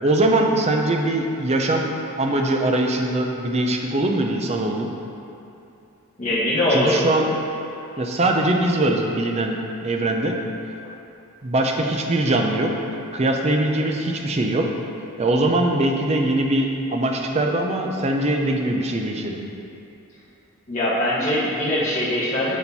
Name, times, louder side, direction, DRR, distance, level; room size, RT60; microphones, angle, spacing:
voice 1, 0.0-1.9 2.2-4.9 6.7-7.3 8.0-9.6 9.8-10.4 11.4-12.7 13.1-14.7 15.2-19.4, right 1 dB, 30° right, 2 dB, 0.5 m, -21 dB
voice 2, 6.2-7.1 20.7-22.6, left 1 dB, 35° left, -12 dB, 1.0 m, -22 dB
7.0 x 4.4 x 4.0 m, 2.8 s
head